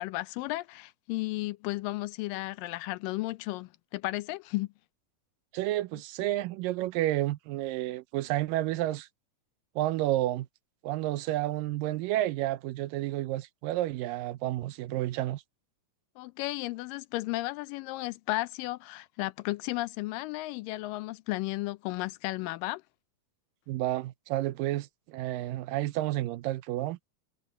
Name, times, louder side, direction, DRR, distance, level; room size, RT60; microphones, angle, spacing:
voice 1, 0.0-4.7 16.2-22.8, left 19 dB, 85° left, 2.3 m, -34 dB
voice 2, 5.5-9.1 9.8-10.5 10.8-15.4 23.7-27.0, right 15 dB, 85° right, 2.4 m, -30 dB
omnidirectional pair, 3.9 m